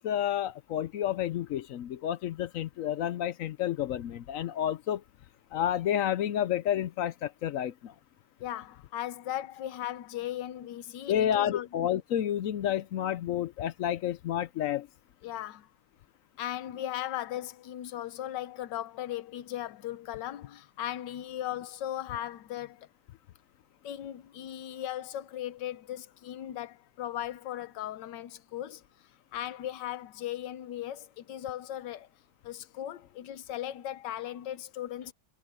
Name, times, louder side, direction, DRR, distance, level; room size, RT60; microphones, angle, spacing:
voice 1, 0.0-5.0 5.5-7.9 11.1-14.9, left 10 dB, 65° left, 0.8 m, -30 dB
voice 2, 8.4-11.7 15.2-15.7 16.4-22.9 23.8-28.8 29.3-32.1 32.4-35.1, left 12 dB, 85° left, 1.4 m, -37 dB
omnidirectional pair, 1.9 m